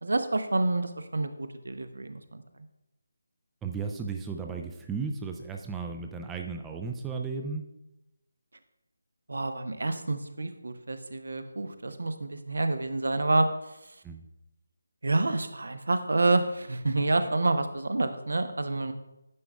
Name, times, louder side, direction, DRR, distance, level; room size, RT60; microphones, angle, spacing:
voice 1, 0.0-2.4 9.3-14.0 15.0-18.9, right 2 dB, 65° right, 9 dB, 0.7 m, -28 dB
voice 2, 3.6-7.7 14.0-14.2, right 5 dB, 10° right, 3 dB, 0.4 m, -35 dB
9.6 x 5.8 x 2.2 m, 0.91 s
figure-of-eight pair, 155°, 0 cm